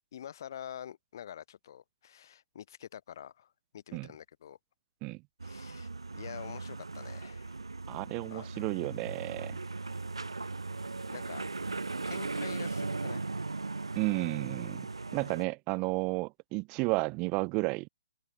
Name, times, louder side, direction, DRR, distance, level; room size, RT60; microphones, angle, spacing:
voice 1, 0.1-4.6 5.4-5.9 6.1-7.6 8.3-8.7 11.0-11.4 12.1-13.2, left 10 dB, 45° left, 4.1 m, -46 dB
sound 1, 5.4-15.4, right 3 dB, 70° right, 1.4 m, -38 dB
voice 2, 7.9-9.6 13.9-17.9, right 27 dB, 25° right, 1.1 m, -32 dB
figure-of-eight pair, 130°, 3 cm